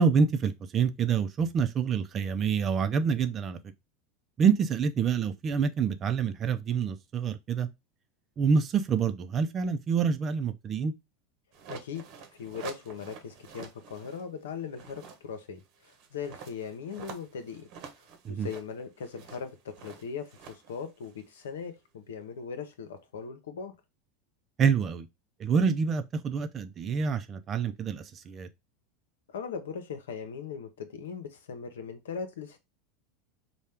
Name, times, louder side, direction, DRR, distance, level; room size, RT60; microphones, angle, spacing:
voice 1, 0.0-3.6 4.4-7.7 8.4-10.9 18.2-18.5 24.6-25.1 25.4-28.5, right 6 dB, 35° right, 0.6 m, -27 dB
sound 1, 11.5-14.2 14.6-21.7, right 7 dB, 55° right, 1.0 m, -48 dB
voice 2, 11.7-12.0 12.4-17.7 18.3-23.7 29.3-32.6, left 6 dB, 85° left, 0.8 m, -39 dB
4.3 x 2.3 x 3.4 m
hypercardioid pair, 100°, 0 cm